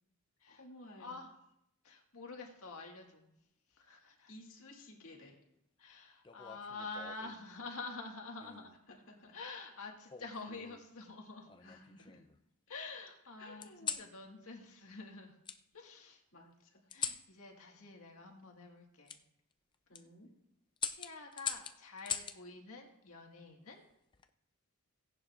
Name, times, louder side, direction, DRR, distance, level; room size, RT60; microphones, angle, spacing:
voice 1, 0.5-1.2 4.3-5.4 8.9-9.3 10.4-10.5 11.6-12.2 13.4-14.0 16.3-16.9 19.9-20.3, left 1 dB, 60° left, -1 dB, 2.6 m, -55 dB
voice 2, 1.8-3.3 3.7-4.3 5.8-8.7 9.3-11.5 12.7-15.3 15.7-16.2 16.9-19.2 20.8-23.8, left 3 dB, 80° left, 1 dB, 1.7 m, -48 dB
sound 1, 6.2-7.4 8.4-8.8 10.1-10.8 11.5-12.4 13.6-14.1 15.4-15.6 16.9-17.3 19.1-19.2 19.7-20.0 20.8-22.4 23.9-24.3, left 7 dB, 20° left, 0.4 m, -42 dB
17.5 x 10.5 x 2.5 m, 0.77 s
head